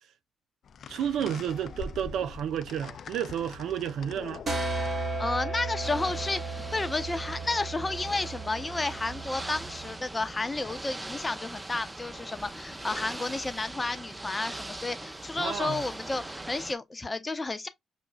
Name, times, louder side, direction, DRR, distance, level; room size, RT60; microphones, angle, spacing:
sound 1, 0.6-6.7, left 6 dB, 60° left, 0.4 m, -44 dB
voice 1, 0.9-4.4 15.4-15.8, right 9 dB, 75° right, 0.4 m, -31 dB
sound 2, 4.5-9.9, right 2 dB, 45° right, 1.3 m, -35 dB
voice 2, 5.2-17.7, left 3 dB, 25° left, 0.8 m, -32 dB
Ocean / Boat Water vehicle, 5.8-16.7, right 2 dB, 15° right, 0.6 m, -41 dB
6.5 x 2.3 x 2.3 m
supercardioid pair, 50°, 0 cm